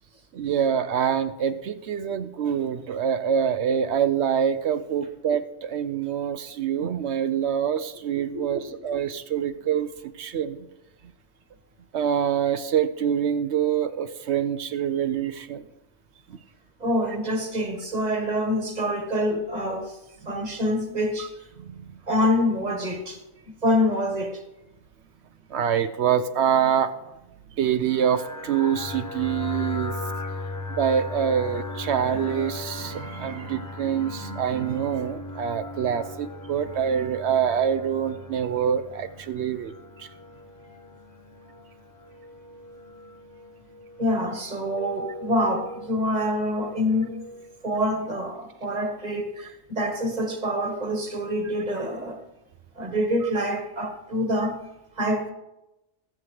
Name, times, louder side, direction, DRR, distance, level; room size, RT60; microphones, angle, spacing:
voice 1, 0.3-10.7 11.9-15.7 16.3-16.4 20.2-20.3 21.2-21.3 21.6-22.0 25.5-26.9 27.6-30.0 30.8-39.7 40.0-40.1 53.2-53.3, right 8 dB, 70° right, 0.9 m, -25 dB
voice 2, 8.3-8.7 16.8-20.0 20.3-21.5 22.1-23.2 23.6-24.4 44.0-47.2 47.6-52.2 52.8-54.6 55.0-55.3, equal, 35° right, 1.5 m, -26 dB
sound 1, 27.9-47.6, left 2 dB, 25° left, 0.5 m, -38 dB
22.0 x 7.4 x 3.2 m
omnidirectional pair, 1.2 m